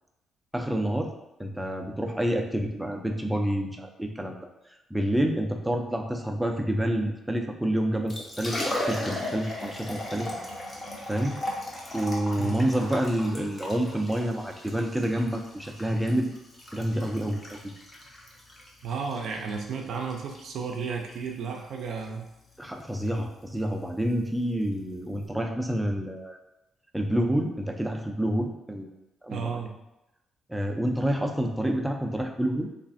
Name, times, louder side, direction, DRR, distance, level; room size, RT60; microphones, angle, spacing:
voice 1, 0.5-1.1 1.4-4.4 4.9-10.3 11.1-11.4 11.9-16.3 16.7-17.6 22.6-26.4 26.9-28.9 29.2-29.5 30.5-32.7, right 1 dB, 5° right, 2 dB, 0.4 m, -28 dB
Liquid, 7.9-25.3, left 1 dB, 25° left, 0.7 m, -38 dB
voice 2, 12.4-12.7 18.8-22.3 29.3-29.7, right 5 dB, 70° right, 2 dB, 0.4 m, -33 dB
3.1 x 2.4 x 2.5 m, 0.93 s
cardioid pair, 90°, 0 cm